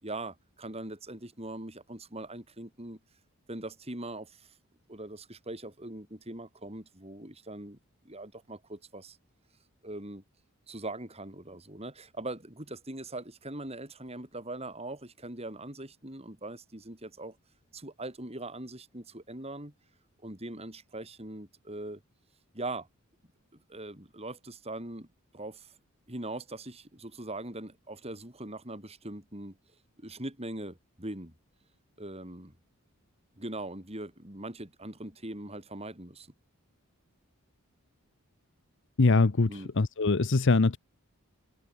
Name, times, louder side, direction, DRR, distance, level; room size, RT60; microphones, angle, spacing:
voice 1, 0.0-3.0 3.5-4.5 4.9-7.8 8.0-9.2 9.8-10.2 10.7-17.4 17.7-19.7 20.2-22.0 22.5-22.9 23.5-25.1 25.3-25.7 26.1-29.6 30.0-31.3 32.0-32.5 33.4-36.3 39.5-39.7, right 2 dB, 25° right, 4.3 m, -41 dB
voice 2, 39.0-40.8, left 3 dB, 55° left, 0.8 m, -23 dB
head